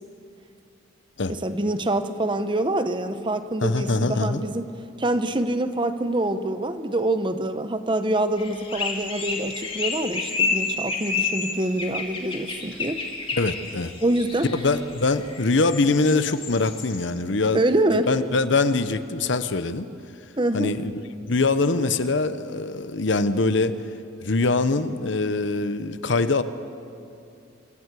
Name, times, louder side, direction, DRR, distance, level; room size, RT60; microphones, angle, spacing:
voice 1, 1.3-4.7 5.0-13.0 14.0-14.5 17.5-18.1 20.4-20.7, right 1 dB, 25° right, 10 dB, 0.8 m, -25 dB
voice 2, 3.6-4.4 13.3-13.9 14.5-17.6 17.9-19.9 20.5-23.7 24.2-26.4, left 3 dB, 65° left, 12 dB, 0.9 m, -23 dB
sound 1, 8.4-17.0, left 4 dB, 25° left, 2.2 m, -30 dB
25.5 x 14.5 x 8.3 m, 2.5 s
head